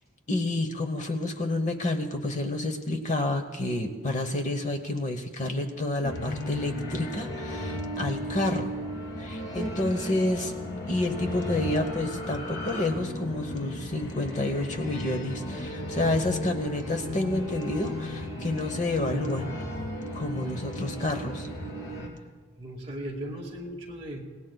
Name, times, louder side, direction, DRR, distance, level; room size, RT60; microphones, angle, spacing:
voice 1, 0.3-8.7 9.2-10.5 10.9-19.5 20.1-21.5, left 2 dB, 35° left, 6 dB, 1.0 m, -29 dB
sound 1, 6.0-22.1, left 1 dB, 80° left, 3.3 m, -35 dB
voice 2, 22.6-24.2, right 1 dB, 30° right, -1 dB, 2.0 m, -37 dB
25.0 x 18.5 x 2.3 m, 1.4 s
head